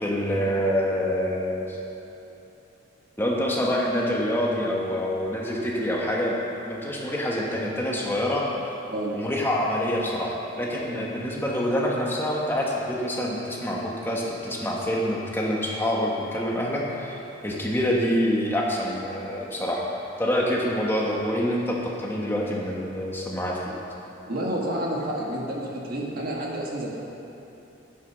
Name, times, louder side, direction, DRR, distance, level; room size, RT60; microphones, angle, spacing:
voice 1, 0.0-1.8 3.2-6.4 6.6-8.8 9.1-19.8 20.2-23.7, equal, 10° left, -3 dB, 1.3 m, -26 dB
voice 2, 24.3-27.0, right 1 dB, 45° right, -2 dB, 1.7 m, -30 dB
9.8 x 9.4 x 6.1 m, 2.9 s
head